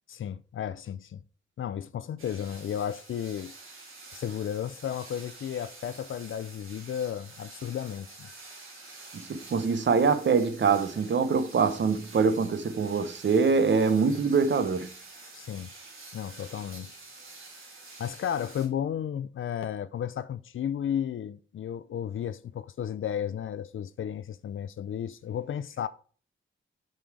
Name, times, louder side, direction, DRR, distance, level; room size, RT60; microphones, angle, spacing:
voice 1, 0.1-1.2 1.6-3.5 4.1-8.3 15.3-15.7 16.1-17.0 18.0-25.9, left 9 dB, 75° left, 0.4 m, -33 dB
sound 1, 2.2-18.7, right 3 dB, 80° right, 3.0 m, -48 dB
voice 2, 9.1-14.9, right 5 dB, 60° right, 0.9 m, -24 dB
7.3 x 5.4 x 4.6 m
wide cardioid pair, 95°, 21 cm